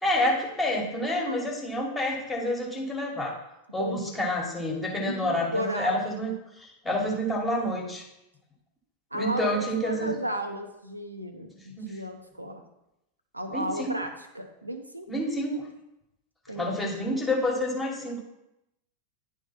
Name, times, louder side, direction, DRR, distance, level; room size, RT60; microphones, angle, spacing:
voice 1, 0.0-3.4 3.7-8.1 9.1-10.1 11.8-12.0 13.5-13.9 15.1-15.7 16.6-18.2, left 1 dB, 10° left, -1 dB, 1.7 m, -28 dB
voice 2, 1.1-1.4 3.8-4.2 5.0-6.0 9.1-12.6 13.3-15.1 16.5-16.8, equal, 85° right, 6 dB, 0.7 m, -34 dB
10.5 x 3.6 x 4.2 m, 0.88 s
figure-of-eight pair, 90°, 0 cm